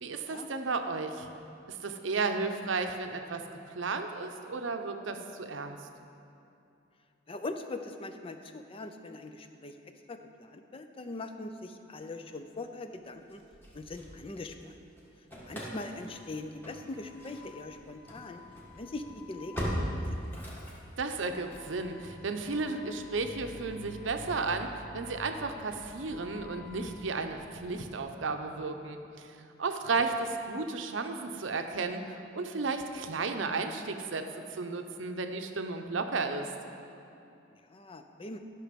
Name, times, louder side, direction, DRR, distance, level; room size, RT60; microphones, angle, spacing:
voice 1, 0.0-1.3 1.7-5.8 21.0-34.2 34.5-36.5, right 4 dB, 80° right, 6 dB, 0.7 m, -34 dB
voice 2, 7.3-9.7 10.1-13.4 13.7-14.7 15.4-18.4 18.7-19.8 20.0-20.2 37.7-38.4, left 2 dB, 30° left, 7 dB, 0.5 m, -41 dB
Engine starting / Slam, 13.3-14.7 15.0-28.0, equal, 10° left, 1.6 m, -42 dB
12.0 x 6.1 x 5.2 m, 2.7 s
head